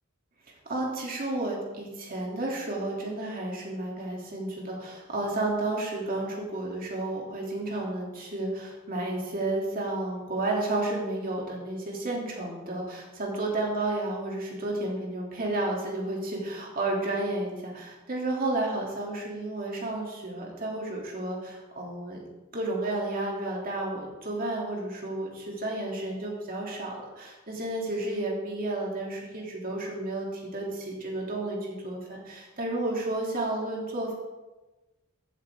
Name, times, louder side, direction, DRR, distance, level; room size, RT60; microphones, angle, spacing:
voice 1, 0.7-22.2 22.5-34.1, right 2 dB, 45° right, -2 dB, 2.8 m, -32 dB
14.5 x 8.7 x 3.6 m, 1.2 s
head